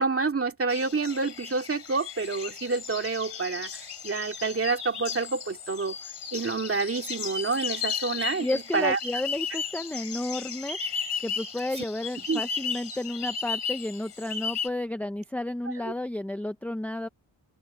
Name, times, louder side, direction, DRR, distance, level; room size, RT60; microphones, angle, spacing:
voice 1, 0.0-6.0 6.3-9.0 11.8-11.9 12.3-12.4 15.8-15.9, right 4 dB, 30° right, 2.3 m, -28 dB
sound 1, 0.7-14.7, left 6 dB, 55° left, 3.0 m, -35 dB
voice 2, 8.4-10.8 11.2-17.1, left 1 dB, 5° left, 0.7 m, -32 dB
wide cardioid pair, 140°, 48 cm